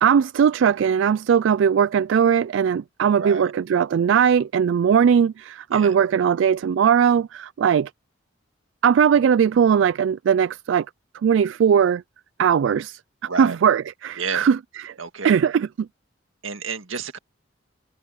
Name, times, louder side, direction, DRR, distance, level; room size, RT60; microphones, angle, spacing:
voice 1, 0.0-7.9 8.8-10.9 11.2-12.0 12.4-13.0 13.4-14.6 14.8-14.9 15.2-15.9, right 7 dB, 70° right, 0.3 m, -19 dB
voice 2, 3.2-3.5 5.7-5.9 13.3-13.6 14.2-14.5 15.0-15.4 16.4-17.2, right 5 dB, 90° right, 2.0 m, -30 dB
head